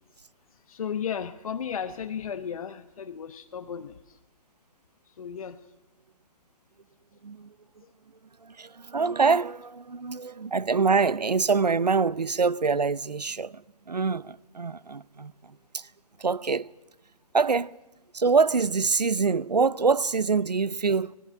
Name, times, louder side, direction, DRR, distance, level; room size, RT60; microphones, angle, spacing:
voice 1, 0.7-4.2 5.1-5.6, left 7 dB, 60° left, 1.0 m, -34 dB
voice 2, 7.2-7.5 8.4-15.9 16.2-16.7 17.3-17.8 18.1-21.1, right 4 dB, 90° right, 0.7 m, -25 dB
19.0 x 18.0 x 9.2 m
figure-of-eight pair, 135°, 20 cm